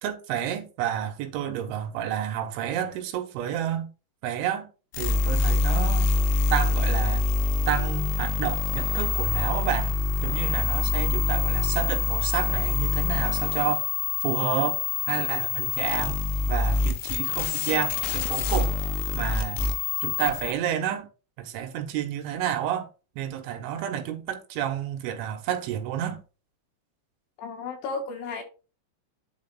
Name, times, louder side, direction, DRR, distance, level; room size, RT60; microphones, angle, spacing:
voice 1, 0.0-3.9 4.2-4.7 5.0-6.1 6.5-7.2 7.7-10.0 10.2-13.9 14.2-14.8 15.1-16.2 16.5-18.7 19.1-19.7 20.0-21.1 21.4-22.9 23.2-26.2, right 10 dB, 85° right, 3.3 m, -30 dB
sound 1, 4.9-20.5, left 4 dB, 85° left, 3.3 m, -25 dB
voice 2, 27.4-28.4, left 4 dB, 70° left, 3.0 m, -33 dB
10.5 x 4.8 x 2.3 m
omnidirectional pair, 5.4 m